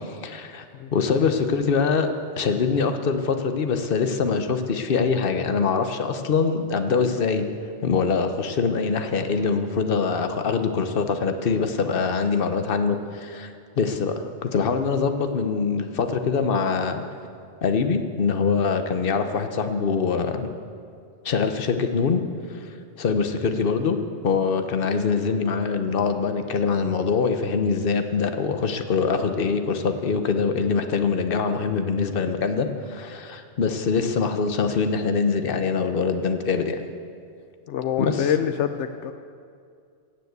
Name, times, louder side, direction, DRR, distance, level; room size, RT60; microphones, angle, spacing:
voice 1, 0.2-0.7 0.9-2.1 2.4-7.5 7.8-17.0 17.6-20.5 21.2-22.2 22.5-22.6 23.0-24.0 24.2-36.8 38.0-38.3, left 5 dB, 55° left, 7 dB, 1.1 m, -24 dB
voice 2, 37.7-39.1, left 9 dB, 80° left, 9 dB, 0.9 m, -25 dB
16.0 x 7.5 x 8.1 m, 2.3 s
omnidirectional pair, 1.2 m